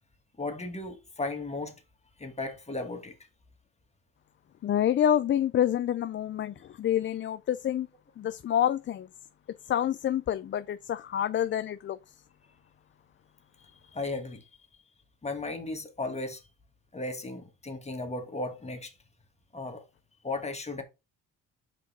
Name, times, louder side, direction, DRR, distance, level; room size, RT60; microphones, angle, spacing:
voice 1, 0.4-1.8 2.2-3.2 13.6-14.5 15.2-16.4 16.9-18.9 19.5-19.8 20.2-20.8, left 2 dB, 20° left, 1.5 m, -35 dB
voice 2, 4.6-7.9 8.2-9.1 9.7-12.1, left 10 dB, 40° left, 0.4 m, -27 dB
5.3 x 3.7 x 5.3 m
cardioid pair, 90°, 30 cm